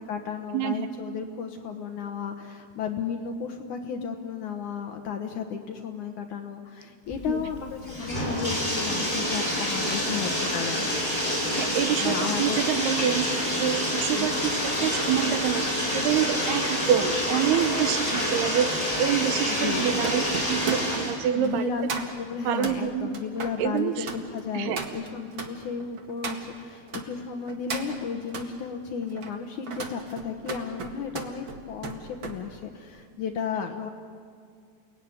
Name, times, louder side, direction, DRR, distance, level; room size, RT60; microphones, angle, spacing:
voice 1, 0.0-10.8 12.0-12.6 14.1-14.3 19.6-19.9 21.4-21.9 22.2-33.9, left 6 dB, 70° left, 5 dB, 1.9 m, -34 dB
voice 2, 0.5-0.9 7.3-7.5 11.6-13.3 13.6-20.2 20.5-21.7 22.5-23.2 23.6-24.1 24.5-24.9, right 10 dB, 75° right, 10 dB, 2.7 m, -27 dB
Bathtub (filling or washing), 7.1-21.1, equal, 10° left, 5.4 m, -27 dB
sound 1, 16.5-27.1 27.5-28.5 29.0-32.4 32.7-33.0, right 4 dB, 50° right, 1.4 m, -38 dB
29.5 x 19.0 x 9.7 m, 2.2 s
omnidirectional pair, 5.1 m